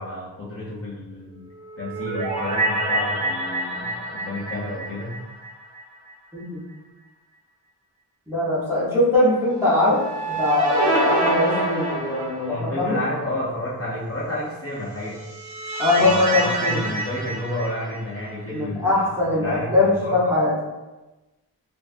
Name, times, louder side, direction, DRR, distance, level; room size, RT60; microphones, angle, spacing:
voice 1, 0.0-1.5 1.8-5.2 12.5-15.2 15.9-19.0 19.3-20.2, left 1 dB, 35° left, -8 dB, 0.6 m, -31 dB
sound 1, 1.5-5.8 6.1-6.2 9.7-12.8 14.9-18.3, right 2 dB, 45° right, 0.8 m, -26 dB
voice 2, 8.3-10.0 10.3-13.0 15.8-16.9 18.5-20.5, left 2 dB, 5° right, -10 dB, 0.8 m, -21 dB
2.6 x 2.2 x 2.5 m, 1.1 s
wide cardioid pair, 125°, 40 cm